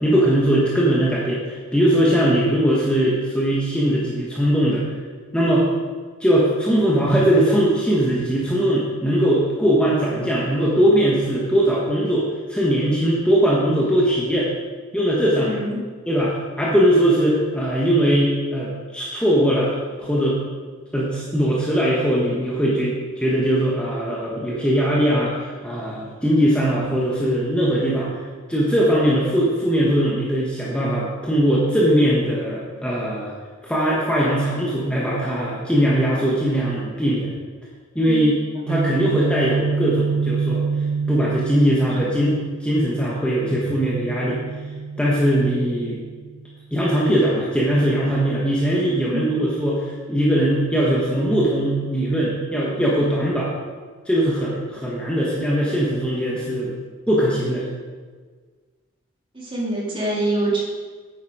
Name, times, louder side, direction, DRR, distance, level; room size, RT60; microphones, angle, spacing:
voice 1, 0.0-4.8 5.3-5.7 6.2-14.5 14.9-15.6 16.1-19.7 20.0-20.4 20.9-28.1 28.5-33.3 33.6-37.3 37.9-38.4 38.7-40.6 41.1-44.4 45.0-46.0 46.7-53.5 54.0-56.7 57.1-57.7, equal, 5° left, -6 dB, 1.4 m, -20 dB
voice 2, 15.4-15.8 38.0-38.3 48.9-49.3 59.3-60.6, right 2 dB, 25° right, -5 dB, 2.7 m, -25 dB
Guitar, 38.7-46.5, right 5 dB, 65° right, 0.4 m, -27 dB
9.6 x 9.1 x 4.9 m, 1.5 s
head